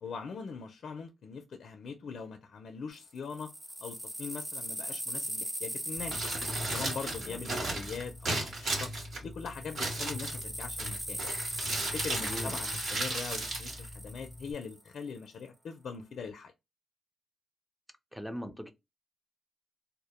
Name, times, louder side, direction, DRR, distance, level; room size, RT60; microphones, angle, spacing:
voice 1, 0.0-3.5 3.8-6.2 6.7-8.9 9.2-11.2 11.9-16.5, left 5 dB, 70° left, 0.4 m, -41 dB
sound 1, 2.9-8.9 9.4-14.8, equal, 15° right, 1.0 m, -39 dB
Crumpling crinkling, 6.0-14.5, right 2 dB, 70° right, 1.1 m, -36 dB
voice 2, 7.2-7.8 12.2-12.6 18.1-18.7, equal, ahead, 0.5 m, -40 dB
2.1 x 2.0 x 3.0 m
cardioid pair, 90°, 0 cm